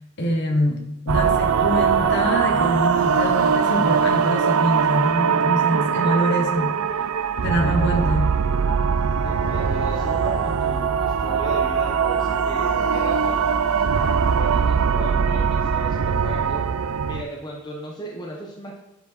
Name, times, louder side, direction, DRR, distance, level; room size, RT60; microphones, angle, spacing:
voice 1, 0.2-6.8 7.4-8.3, equal, 55° left, 2 dB, 1.3 m, -24 dB
sound 1, 1.1-17.2, right 6 dB, 90° right, 0.4 m, -21 dB
voice 2, 7.6-8.2 9.2-16.7 17.0-18.8, equal, 20° left, -2 dB, 1.1 m, -36 dB
sound 2, 9.1-16.0, right 3 dB, 25° right, 0.4 m, -34 dB
9.2 x 4.8 x 4.4 m, 0.90 s
head